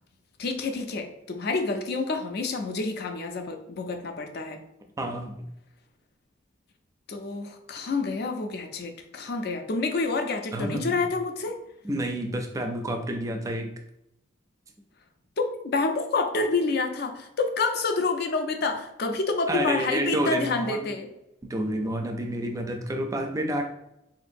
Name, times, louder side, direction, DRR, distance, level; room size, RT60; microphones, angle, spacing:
voice 1, 0.4-4.6 7.1-11.6 15.4-21.1, left 3 dB, 55° left, 6 dB, 0.4 m, -28 dB
voice 2, 5.0-5.3 10.5-11.0 11.8-13.7 19.5-20.9 21.4-23.6, right 1 dB, 15° right, 4 dB, 0.3 m, -29 dB
3.8 x 2.6 x 2.6 m, 0.83 s
head